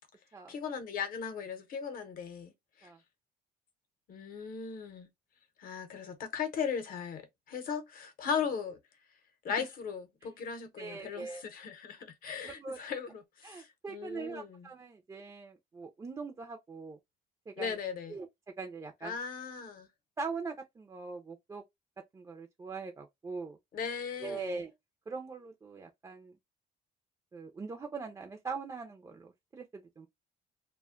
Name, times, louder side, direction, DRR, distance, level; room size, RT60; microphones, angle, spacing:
voice 1, 0.5-2.5 2.8-2.9 4.1-5.1 5.6-8.8 9.4-14.7 17.6-18.2 19.0-19.9 23.7-24.6, left 6 dB, 55° left, 0.8 m, -37 dB
voice 2, 10.8-11.4 12.4-12.8 13.4-17.0 17.5-17.8 18.1-18.3 18.6-19.1 20.2-21.6 22.1-23.6 24.2-24.7 25.1-26.4 27.3-30.1, right 4 dB, 20° right, 0.4 m, -42 dB
2.2 x 2.1 x 3.5 m
cardioid pair, 110°, 17 cm